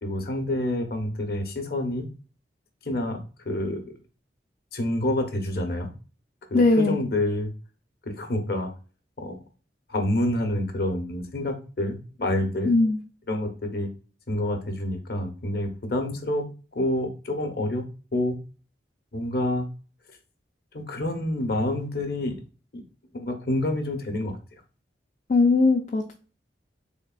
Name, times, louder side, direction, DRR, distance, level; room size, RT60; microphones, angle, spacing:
voice 1, 0.0-2.1 2.8-3.2 3.4-4.0 4.7-5.9 6.5-7.5 8.1-8.7 9.2-9.4 9.9-12.7 13.3-13.9 14.3-16.5 16.7-17.8 18.1-18.4 19.1-19.7 20.7-22.4 22.7-22.8 23.1-24.4, left 1 dB, 55° left, 5 dB, 0.9 m, -28 dB
voice 2, 6.5-7.0 12.6-13.0 25.3-26.1, left 3 dB, 40° left, 1 dB, 0.4 m, -19 dB
3.6 x 3.6 x 2.3 m, 0.36 s
head